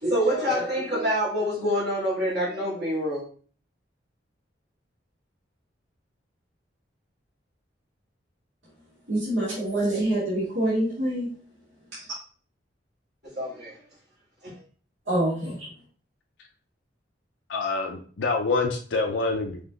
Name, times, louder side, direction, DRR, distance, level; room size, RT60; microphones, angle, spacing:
voice 1, 0.0-3.2 13.2-13.7, equal, 70° right, -11 dB, 2.2 m, -26 dB
voice 2, 9.1-11.3 12.0-12.1 15.1-15.7, right 1 dB, 85° right, -8 dB, 1.8 m, -26 dB
voice 3, 17.5-19.7, left 3 dB, 90° left, 1 dB, 0.6 m, -26 dB
5.4 x 3.3 x 2.4 m, 0.44 s
head